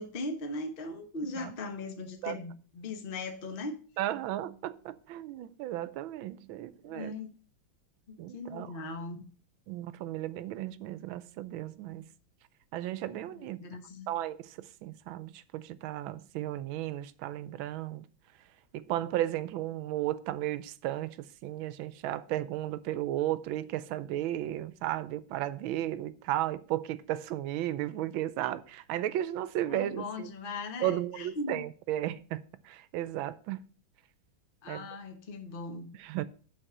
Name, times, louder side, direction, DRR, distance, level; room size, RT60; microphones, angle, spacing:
voice 1, 0.0-3.8 6.8-7.3 8.1-9.2 13.3-14.1 29.7-31.6 34.6-35.9, left 2 dB, 35° left, 1.0 m, -39 dB
voice 2, 4.0-7.1 8.2-8.7 9.7-12.0 12.7-13.6 14.1-18.1 18.7-30.3 30.8-33.7 34.7-34.9 36.0-36.2, right 13 dB, 85° right, 1.4 m, -34 dB
9.2 x 4.2 x 6.0 m
omnidirectional pair, 2.2 m